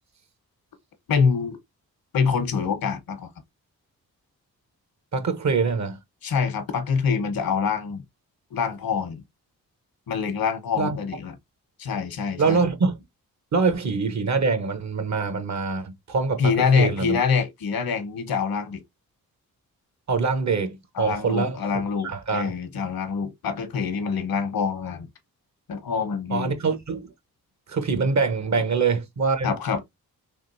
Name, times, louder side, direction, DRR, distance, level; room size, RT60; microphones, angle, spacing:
voice 1, 1.1-1.6 2.1-3.3 6.2-8.0 8.5-9.2 10.1-11.3 11.8-12.6 16.4-18.8 21.0-25.1 25.7-26.6 29.4-29.8, left 6 dB, 75° left, 1.0 m, -25 dB
voice 2, 5.1-6.0 10.8-11.0 12.4-13.0 13.5-17.2 20.1-21.6 22.0-22.5 26.3-27.1 27.7-29.5, right 4 dB, 50° right, 0.9 m, -24 dB
3.6 x 2.6 x 2.5 m
cardioid pair, 55°, 36 cm